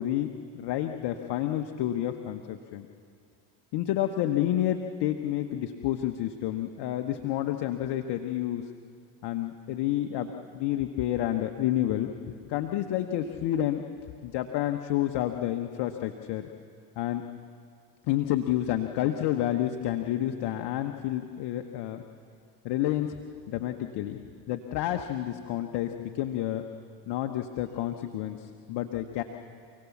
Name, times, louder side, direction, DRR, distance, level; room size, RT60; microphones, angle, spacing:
voice 1, 0.0-2.9 3.7-8.7 9.2-12.1 12.4-13.9 14.2-16.5 17.0-17.3 18.1-22.0 22.6-23.2 23.5-24.2 24.5-26.6 27.1-29.2, left 12 dB, 60° left, 6 dB, 1.3 m, -29 dB
28.5 x 17.5 x 7.3 m, 2.3 s
hypercardioid pair, 80°, 47 cm